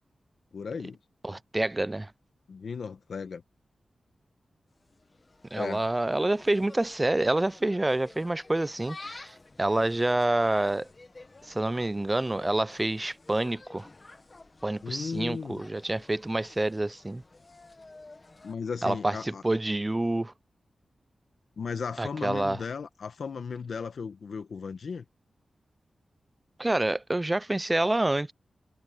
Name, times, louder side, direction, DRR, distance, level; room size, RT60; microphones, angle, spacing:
voice 1, 0.5-1.0 2.5-3.4 5.5-5.8 14.8-15.6 18.4-19.4 21.6-25.0, left 5 dB, 70° left, 1.3 m, -35 dB
voice 2, 1.2-2.1 5.5-10.9 11.5-13.9 14.6-17.2 18.8-20.3 22.0-22.6 26.6-28.3, right 2 dB, 15° right, 0.4 m, -27 dB
Insect, 4.7-18.5, left 2 dB, 30° left, 1.3 m, -51 dB
wide cardioid pair, 135°, 0 cm